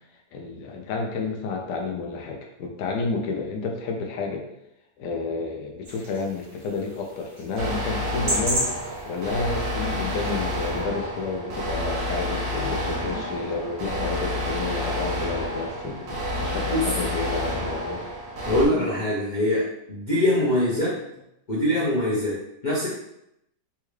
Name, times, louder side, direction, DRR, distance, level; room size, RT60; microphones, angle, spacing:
voice 1, 0.3-4.4 5.0-8.7 9.1-18.0 18.5-18.9, left 4 dB, 85° left, 1 dB, 1.2 m, -30 dB
sound 1, 5.8-10.8, right 1 dB, 55° right, 0.6 m, -34 dB
sound 2, 7.6-18.7, left 1 dB, 70° right, 1.3 m, -29 dB
voice 2, 18.5-21.0 21.5-22.9, left 1 dB, 45° left, -8 dB, 0.6 m, -23 dB
3.5 x 2.3 x 3.1 m, 0.81 s
omnidirectional pair, 1.8 m